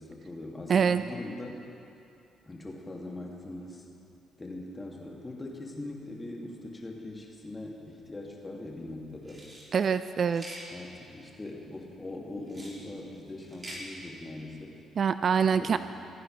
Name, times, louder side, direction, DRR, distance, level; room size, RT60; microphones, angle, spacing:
voice 1, 0.0-1.6 2.5-3.8 4.4-9.4 10.7-14.8 15.5-15.8, left 2 dB, 20° left, -1 dB, 2.5 m, -41 dB
voice 2, 0.7-1.0 9.7-10.4 15.0-15.8, right 6 dB, 45° right, 12 dB, 0.3 m, -24 dB
sound 1, 9.2-9.7 10.3-10.7 12.5-12.8 13.4-13.8, right 1 dB, 30° right, 3.3 m, -44 dB
28.0 x 9.6 x 3.4 m, 2.6 s
figure-of-eight pair, 40°, 0 cm